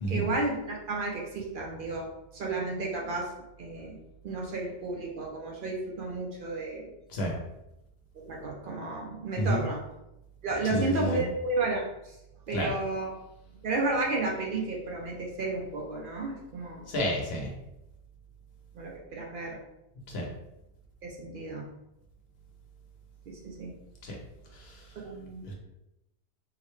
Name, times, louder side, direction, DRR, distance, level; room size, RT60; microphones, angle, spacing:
voice 1, 0.1-2.1 2.3-3.3 3.6-4.0 4.2-6.9 8.2-9.8 10.4-12.2 12.5-13.1 13.6-16.9 18.7-19.6 21.0-21.7 23.3-23.7 25.0-25.5, right 3 dB, 60° right, -1 dB, 0.6 m, -32 dB
voice 2, 10.7-11.2 12.5-12.7 16.9-17.5 20.1-20.3 24.0-24.2 24.5-24.9 25.5-25.6, equal, 65° left, -1 dB, 1.0 m, -30 dB
3.7 x 2.2 x 3.1 m, 0.92 s
omnidirectional pair, 1.1 m